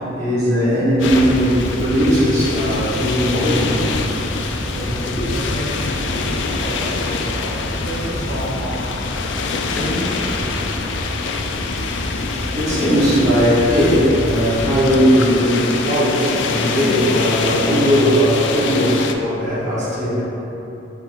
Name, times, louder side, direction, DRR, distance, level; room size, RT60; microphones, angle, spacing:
voice 1, 0.0-4.0 4.6-4.7 5.1-5.2 11.6-20.2, equal, 40° right, -11 dB, 1.3 m, -18 dB
sound 1, 1.0-19.1, left 4 dB, 80° left, 0.3 m, -25 dB
sound 2, 1.0-14.9, equal, ahead, 0.7 m, -29 dB
voice 2, 4.7-9.0 9.7-10.3, equal, 75° right, -9 dB, 1.2 m, -29 dB
5.1 x 4.2 x 2.3 m, 3.0 s
head